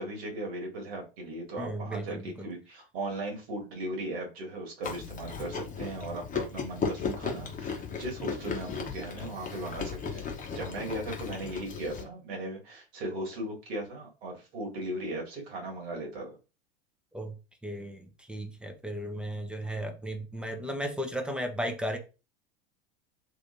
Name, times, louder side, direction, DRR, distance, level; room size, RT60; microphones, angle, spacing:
voice 1, 0.0-16.3, right 1 dB, 70° right, 1.9 m, -37 dB
voice 2, 1.6-2.5 17.1-17.4 17.6-22.0, equal, 5° right, 0.8 m, -35 dB
Chewing mastication, 4.8-12.0, left 5 dB, 25° left, 1.0 m, -36 dB
3.4 x 3.2 x 2.7 m
hypercardioid pair, 90°, 32 cm